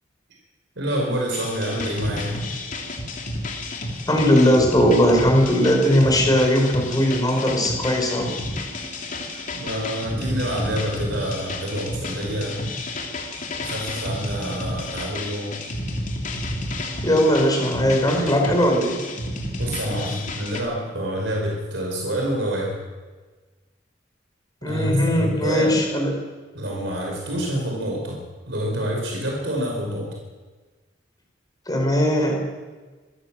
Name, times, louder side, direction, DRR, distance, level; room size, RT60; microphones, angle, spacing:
voice 1, 0.8-2.4 9.5-12.6 13.6-15.6 19.6-22.8 24.7-25.9 26.5-30.1, equal, 70° right, -1 dB, 5.5 m, -27 dB
sound 1, 1.3-20.6, left 1 dB, 45° left, 3.5 m, -31 dB
voice 2, 4.1-8.3 17.0-19.0 24.6-26.2 31.7-32.4, equal, 20° left, 2 dB, 5.3 m, -19 dB
26.5 x 14.0 x 7.7 m, 1.3 s
head